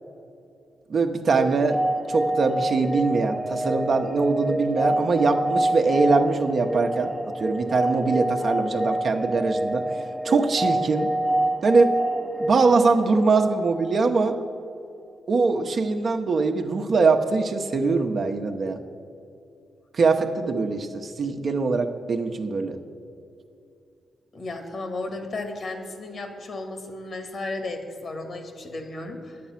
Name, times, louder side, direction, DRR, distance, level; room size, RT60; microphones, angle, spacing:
voice 1, 0.9-1.8 2.1-7.1 7.4-9.8 10.2-11.1 11.6-11.9 12.4-14.4 15.3-18.8 19.9-22.8, right 4 dB, 60° right, 4 dB, 0.9 m, -22 dB
sound 1, 1.3-14.1, right 1 dB, 5° left, 0.7 m, -27 dB
voice 2, 24.3-29.4, left 2 dB, 60° left, 6 dB, 1.8 m, -34 dB
10.0 x 8.6 x 5.8 m, 2.7 s
supercardioid pair, 50°, 0 cm